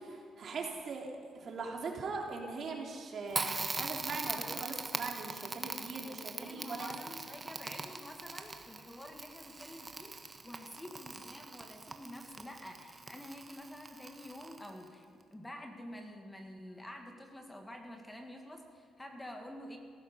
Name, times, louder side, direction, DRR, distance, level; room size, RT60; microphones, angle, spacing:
voice 1, 0.0-6.9, right 4 dB, 55° right, 1 dB, 3.1 m, -41 dB
Crackle, 3.3-14.9, right 3 dB, 25° right, 1.3 m, -41 dB
voice 2, 6.2-19.8, left 1 dB, 15° left, 3 dB, 2.1 m, -48 dB
17.0 x 15.0 x 5.6 m, 2.3 s
cardioid pair, 90°, 0 cm